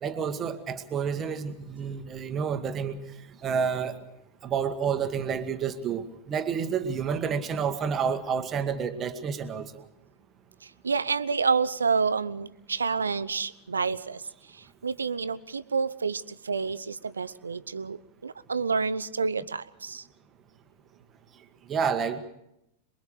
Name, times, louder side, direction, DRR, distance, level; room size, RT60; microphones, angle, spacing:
voice 1, 0.0-3.0 3.4-4.0 4.4-9.9 21.7-22.2, right 6 dB, 25° right, 8 dB, 1.6 m, -29 dB
voice 2, 10.6-14.2 14.5-20.0, right 5 dB, 75° right, 15 dB, 0.8 m, -29 dB
27.5 x 22.0 x 4.9 m, 0.82 s
figure-of-eight pair, 90°, 0 cm